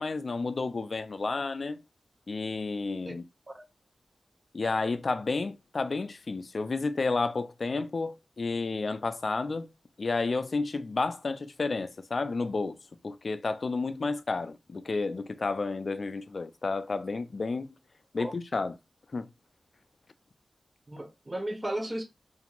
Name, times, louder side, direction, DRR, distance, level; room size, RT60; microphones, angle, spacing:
voice 1, 0.0-1.8 2.3-3.2 4.5-9.7 10.0-12.8 13.0-17.7 18.1-18.8 19.1-19.3, left 3 dB, 55° left, 0.3 m, -31 dB
voice 2, 20.9-22.0, right 1 dB, 25° right, 0.7 m, -35 dB
2.5 x 2.4 x 2.9 m
cardioid pair, 65°, 0 cm